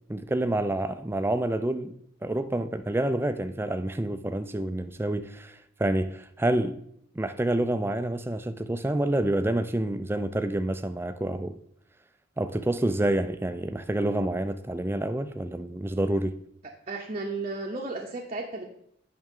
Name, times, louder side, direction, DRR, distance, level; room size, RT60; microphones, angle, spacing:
voice 1, 0.1-1.9 2.2-6.8 7.2-11.6 12.4-16.4, right 1 dB, 10° right, 0.3 m, -28 dB
voice 2, 16.9-18.6, right 3 dB, 35° right, 0.7 m, -33 dB
9.0 x 5.9 x 3.6 m
head